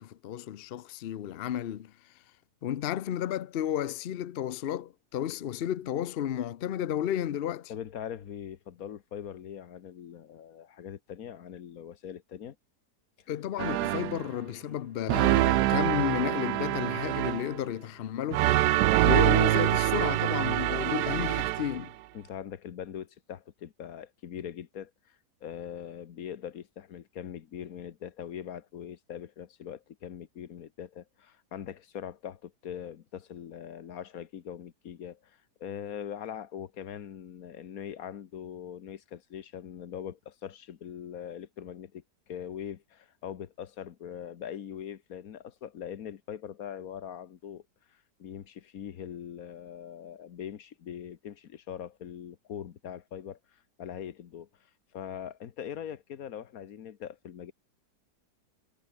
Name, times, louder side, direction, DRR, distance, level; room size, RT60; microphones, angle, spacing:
voice 1, 0.0-1.9 2.6-7.7 13.3-18.5 19.0-21.9, left 11 dB, 80° left, 0.5 m, -32 dB
voice 2, 7.7-12.6 13.2-13.3 22.1-42.0 42.3-47.6 47.9-54.5 54.9-57.5, left 9 dB, 60° left, 1.4 m, -42 dB
sound 1, 13.6-14.3 15.1-17.6 18.3-21.9, right 15 dB, 75° right, 1.1 m, -25 dB
omnidirectional pair, 1.8 m